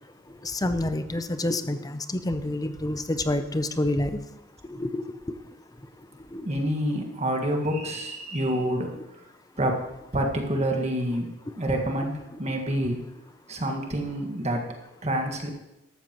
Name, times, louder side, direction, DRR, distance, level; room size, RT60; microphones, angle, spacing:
voice 1, 0.4-4.1 4.7-5.0 6.3-6.4, left 1 dB, 20° left, 9 dB, 0.6 m, -28 dB
voice 2, 6.4-9.0 9.6-9.9 10.1-13.1 13.5-14.7 15.0-15.5, right 1 dB, 35° right, 3 dB, 1.7 m, -27 dB
14.0 x 12.5 x 3.0 m, 0.91 s
head